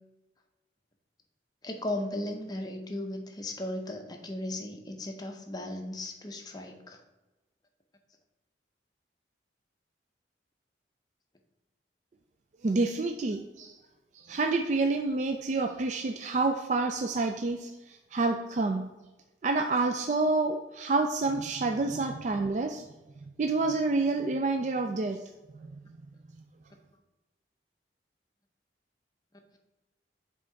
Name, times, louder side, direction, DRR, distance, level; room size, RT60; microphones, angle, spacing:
voice 1, 1.6-7.0, left 1 dB, 20° left, 4 dB, 0.7 m, -36 dB
voice 2, 12.6-13.7 14.1-18.9 19.4-22.8 23.4-25.2 25.5-25.7, right 3 dB, 40° right, 6 dB, 0.3 m, -28 dB
7.4 x 3.7 x 4.5 m, 1.1 s
head